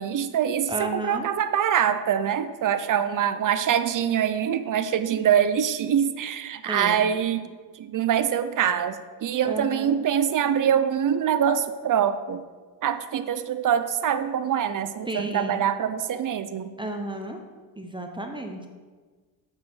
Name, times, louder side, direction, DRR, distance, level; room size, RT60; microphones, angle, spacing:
voice 1, 0.0-7.5 7.7-12.4 12.8-16.7, right 9 dB, 45° right, 12 dB, 0.5 m, -24 dB
voice 2, 0.7-1.3 6.7-7.0 9.4-10.0 15.1-15.7 16.8-17.4 17.8-18.7, right 1 dB, 10° right, 3 dB, 0.8 m, -32 dB
8.4 x 4.9 x 5.6 m, 1.4 s
cardioid pair, 90°, 46 cm